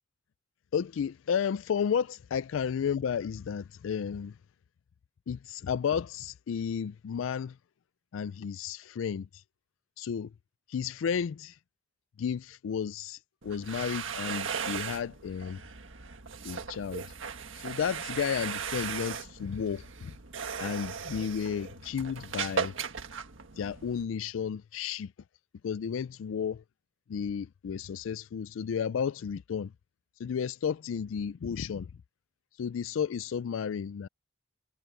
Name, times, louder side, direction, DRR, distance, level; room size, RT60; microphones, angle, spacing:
voice 1, 0.7-4.4 5.3-7.6 8.1-9.4 10.0-10.3 10.7-11.6 12.2-15.6 16.4-17.0 17.5-20.2 20.6-22.7 23.6-25.1 25.6-26.6 27.1-29.7 30.2-31.9 32.6-34.1, left 7 dB, 80° left, 0.4 m, -32 dB
sound 1, 13.4-24.0, right 6 dB, 75° right, 1.7 m, -37 dB
head